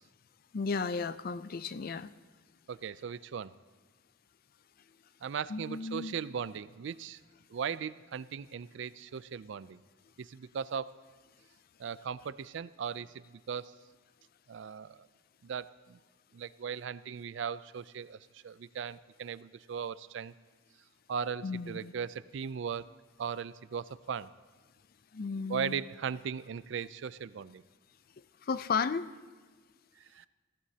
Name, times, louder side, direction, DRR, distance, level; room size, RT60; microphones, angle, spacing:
voice 1, 0.5-2.1 5.5-6.1 21.4-21.9 25.1-25.7 28.4-29.1, left 5 dB, 50° left, 15 dB, 0.4 m, -34 dB
voice 2, 2.7-3.5 5.2-7.2 7.5-9.8 10.2-11.0 11.8-13.8 14.5-15.1 15.4-16.0 16.3-20.3 21.1-22.9 23.2-24.3 25.5-27.6 30.0-30.3, right 7 dB, 65° right, 17 dB, 0.4 m, -38 dB
21.5 x 15.5 x 2.8 m, 1.4 s
head